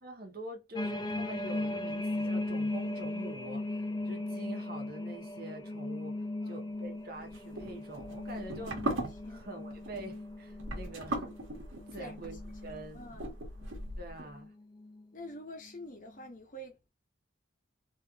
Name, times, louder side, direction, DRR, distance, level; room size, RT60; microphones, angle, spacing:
voice 1, 0.0-8.8 9.3-11.3 11.9-13.0 14.0-14.5, right 1 dB, 45° right, 1.1 m, -45 dB
sound 1, 0.8-13.1 13.6-13.9 14.3-15.0 15.7-15.8, left 2 dB, 20° left, 0.5 m, -38 dB
voice 2, 6.4-7.0 9.2-9.7 12.0-12.1 12.9-13.4 15.1-16.9, equal, 40° left, 1.0 m, -47 dB
sound 2, 7.2-14.2, right 1 dB, 75° right, 1.4 m, -39 dB
3.2 x 2.9 x 2.4 m
head